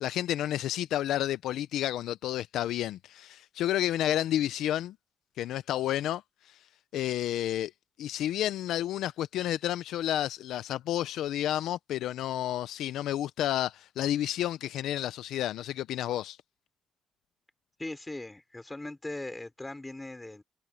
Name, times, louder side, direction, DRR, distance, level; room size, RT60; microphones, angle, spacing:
voice 1, 0.0-5.0 5.4-6.6 6.9-7.7 8.0-16.4, left 12 dB, 80° left, 0.6 m, -30 dB
voice 2, 17.8-20.4, left 2 dB, 15° left, 5.3 m, -39 dB
cardioid pair, 90°, 0 cm